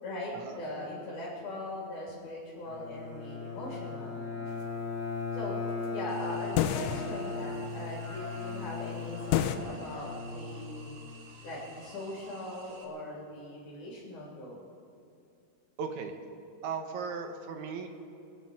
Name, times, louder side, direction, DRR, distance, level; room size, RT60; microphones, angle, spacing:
voice 1, 0.0-4.2 5.3-5.5 5.9-10.9 11.4-14.6, left 1 dB, 75° left, -6 dB, 4.4 m, -40 dB
Bowed string instrument, 2.7-11.1, left 4 dB, 40° left, 4.2 m, -38 dB
sound 1, 6.1-12.8, right 4 dB, 55° right, 2.5 m, -53 dB
sound 2, 6.6-7.4 9.3-9.6, left 11 dB, 90° left, 2.2 m, -28 dB
voice 2, 15.8-16.1 16.6-17.9, right 5 dB, 75° right, 6 dB, 2.4 m, -37 dB
25.0 x 8.8 x 6.4 m, 2.7 s
omnidirectional pair, 3.6 m